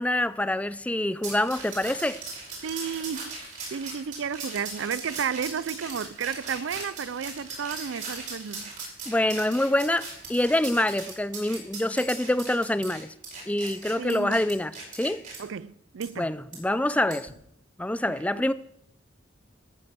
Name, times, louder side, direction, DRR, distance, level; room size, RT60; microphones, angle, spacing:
voice 1, 0.0-2.2 9.1-13.1 13.5-15.2 16.2-17.3 17.8-18.5, left 1 dB, 5° left, 0.4 m, -26 dB
sound 1, 1.2-15.4 16.0-16.1 16.5-16.6 17.1-17.3, right 3 dB, 45° right, 5.3 m, -39 dB
voice 2, 2.6-3.4 3.7-8.7 14.0-14.4 15.4-16.3 18.1-18.4, right 7 dB, 80° right, 0.4 m, -32 dB
14.5 x 8.6 x 6.9 m
head